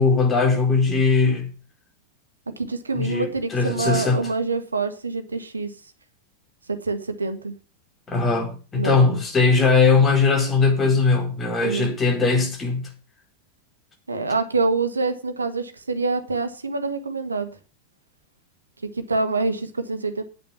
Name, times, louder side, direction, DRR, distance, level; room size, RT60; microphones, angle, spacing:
voice 1, 0.0-1.5 2.9-4.3 8.1-12.9, left 4 dB, 20° left, 4.1 m, -20 dB
voice 2, 2.6-5.7 6.7-7.5 8.8-9.2 11.6-11.9 14.1-17.5 18.8-20.2, right 3 dB, 75° right, 1.6 m, -26 dB
8.9 x 8.9 x 7.1 m
figure-of-eight pair, 90°, 0 cm